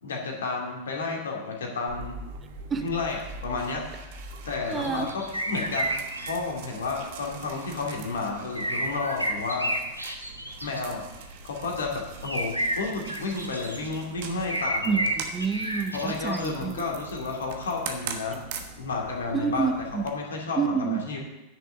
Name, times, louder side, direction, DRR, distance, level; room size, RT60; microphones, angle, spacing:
voice 1, 0.0-2.2 2.8-4.2 4.4-9.8 10.6-15.1 15.9-18.4 18.8-19.7 20.0-21.2, left 4 dB, 65° left, 0 dB, 2.4 m, -32 dB
sound 1, 1.9-20.1, right 5 dB, 50° right, 1.3 m, -42 dB
voice 2, 4.7-5.1 14.8-16.8 19.3-20.0 20.6-21.0, right 6 dB, 20° right, 9 dB, 0.9 m, -28 dB
sound 2, 4.7-6.4 8.5-10.8 12.2-14.0 14.5-16.5, right 1 dB, 90° right, 1.1 m, -31 dB
10.5 x 6.5 x 6.8 m, 1.0 s
figure-of-eight pair, 90°, 0 cm